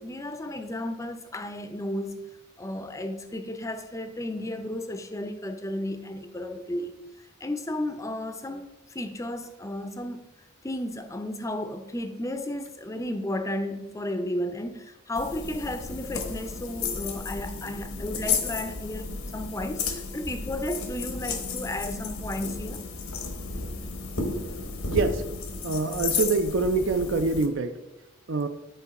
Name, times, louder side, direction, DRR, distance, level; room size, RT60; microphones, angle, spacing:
voice 1, 0.0-2.2 2.6-7.0 7.4-10.2 10.6-19.1 19.3-22.8, left 1 dB, 15° left, 0.5 m, -33 dB
sound 1, 15.2-27.5, left 4 dB, 85° left, 1.1 m, -33 dB
voice 2, 24.9-25.2 25.6-27.8 28.3-28.5, right 3 dB, 60° right, 0.4 m, -25 dB
9.1 x 4.6 x 4.1 m
head